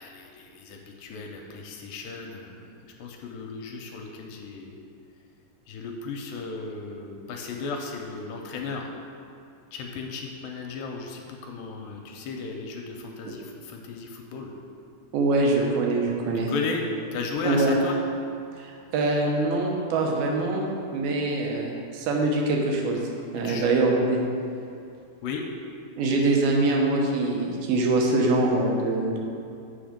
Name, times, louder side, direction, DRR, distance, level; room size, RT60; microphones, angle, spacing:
voice 1, 0.0-4.8 5.7-8.9 9.7-14.5 16.4-16.8 17.1-18.0 23.4-23.7 25.2-25.5, left 4 dB, 80° left, 1 dB, 2.2 m, -35 dB
voice 2, 15.1-16.5 17.4-17.8 18.6-20.6 20.9-23.0 23.3-24.2 26.0-29.2, right 2 dB, 85° right, 0 dB, 2.9 m, -24 dB
7.7 x 5.8 x 5.1 m, 2.5 s
omnidirectional pair, 4.3 m